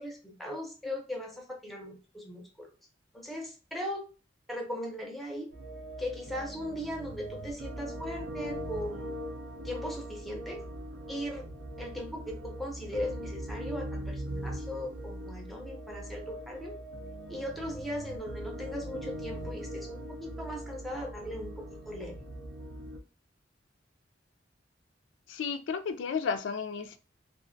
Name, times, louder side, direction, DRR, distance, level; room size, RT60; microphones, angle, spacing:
voice 1, 0.0-2.7 3.1-4.0 4.5-5.5 6.0-9.2 9.6-10.6 11.1-11.5 11.8-16.8 17.3-22.1, left 1 dB, ahead, 0.5 m, -38 dB
sound 1, 5.5-23.0, right 1 dB, 85° right, 0.5 m, -41 dB
voice 2, 25.3-27.0, left 5 dB, 85° left, 0.3 m, -33 dB
2.4 x 2.1 x 2.5 m
head